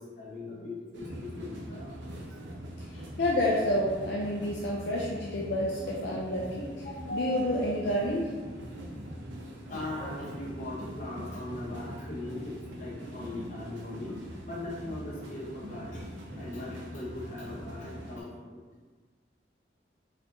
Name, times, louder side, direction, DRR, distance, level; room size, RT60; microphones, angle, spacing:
voice 1, 0.0-2.2 9.7-16.0 16.3-18.6, left 2 dB, 40° left, -5 dB, 0.9 m, -40 dB
sound 1, 0.9-18.2, equal, 80° right, 0.6 m, -43 dB
voice 2, 3.2-8.3, left 1 dB, 65° left, -4 dB, 0.4 m, -29 dB
4.2 x 2.6 x 2.9 m, 1.4 s
head